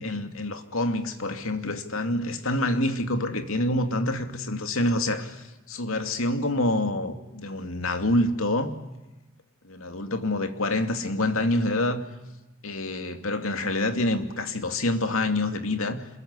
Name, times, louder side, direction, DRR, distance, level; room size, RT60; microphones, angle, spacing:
voice 1, 0.0-8.8 9.6-12.1 12.6-16.1, left 1 dB, 75° left, 7 dB, 2.6 m, -27 dB
27.0 x 22.0 x 9.8 m, 1.0 s
head